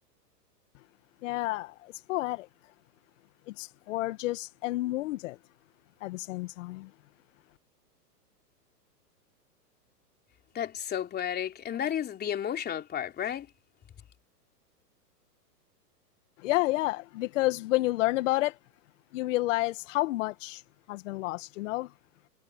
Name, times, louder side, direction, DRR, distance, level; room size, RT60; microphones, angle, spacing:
voice 1, 1.2-2.5 3.5-5.4 6.0-6.9 16.4-18.6 19.1-20.6 20.9-21.9, left 19 dB, 50° left, 1.8 m, -30 dB
voice 2, 10.5-13.5, left 9 dB, 20° left, 3.4 m, -32 dB
hypercardioid pair, 125°, 49 cm